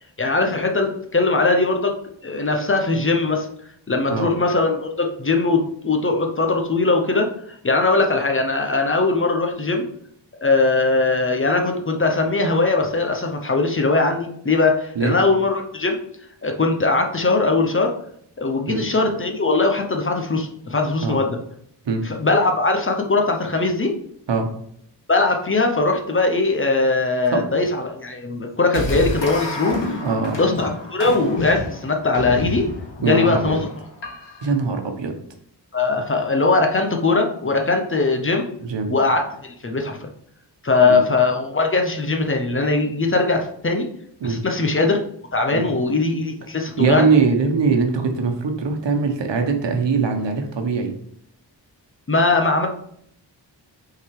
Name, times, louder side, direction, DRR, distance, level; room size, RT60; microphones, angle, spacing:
voice 1, 0.2-1.9 2.2-3.5 3.9-7.3 7.6-9.9 10.4-16.0 16.4-17.9 18.4-21.4 22.0-24.0 25.1-30.0 30.3-32.7 33.0-33.7 35.7-38.5 38.9-40.1 40.6-43.9 44.2-45.0 45.3-47.1 52.1-52.7, left 3 dB, 30° left, 3 dB, 0.8 m, -20 dB
sound 1, 28.7-34.5, left 2 dB, 85° left, 1.6 m, -29 dB
voice 2, 30.0-30.4 33.0-33.6 34.4-35.2 38.6-38.9 40.8-41.0 44.2-44.4 45.5-45.7 46.8-50.9, right 4 dB, 80° right, 5 dB, 1.1 m, -21 dB
5.9 x 3.9 x 4.7 m, 0.69 s
wide cardioid pair, 160°, 43 cm